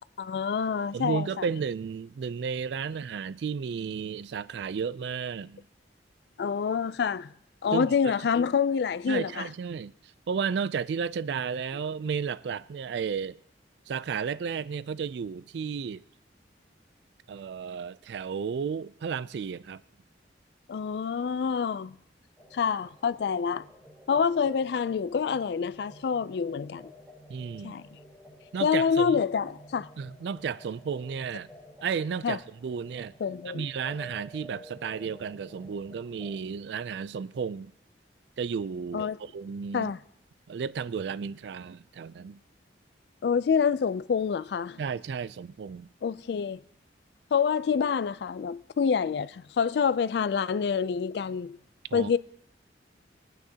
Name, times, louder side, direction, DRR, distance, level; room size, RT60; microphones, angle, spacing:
voice 1, 0.2-1.5 6.4-7.3 7.6-9.5 20.7-21.9 22.5-23.6 24.1-26.9 27.6-27.8 28.6-29.9 32.2-32.4 33.2-33.6 38.9-39.2 39.7-40.0 43.2-44.8 46.0-46.6 47.3-51.6 51.9-52.2, left 6 dB, 65° left, 0.3 m, -27 dB
voice 2, 0.9-5.6 7.7-7.9 9.1-9.9 10.3-13.4 13.9-16.0 17.3-19.8 27.3-27.8 28.5-29.2 30.0-31.5 31.8-33.1 33.5-37.7 38.4-39.9 40.5-42.4 44.8-45.9 51.9-52.1, right 6 dB, 70° right, 0.3 m, -33 dB
sound 1, 22.4-36.4, equal, ahead, 1.7 m, -51 dB
22.0 x 9.3 x 2.8 m
head